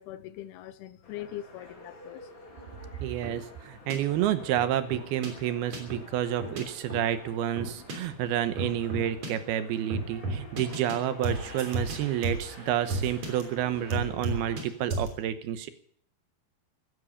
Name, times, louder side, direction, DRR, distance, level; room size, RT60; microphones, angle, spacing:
voice 1, 0.0-2.3, left 12 dB, 85° left, 2.8 m, -41 dB
sound 1, 1.0-14.6, left 3 dB, 35° left, 3.0 m, -50 dB
Bark, 1.6-3.0 4.0-4.1 4.4-5.1 6.2-7.3 8.6-9.6 10.7-11.6 12.6-12.8 13.8-14.0, left 1 dB, 5° left, 4.1 m, -51 dB
voice 2, 3.0-15.7, right 11 dB, 85° right, 2.9 m, -29 dB
sound 2, 3.2-3.4 3.9-4.0 4.6-5.3 5.7-6.0 6.4-6.6 6.9-7.0 7.6-7.9 8.6-9.3 9.9-10.9 11.2-13.4 13.9-14.6 14.9-15.1, right 2 dB, 45° right, 4.3 m, -33 dB
15.5 x 13.0 x 7.1 m
omnidirectional pair, 4.4 m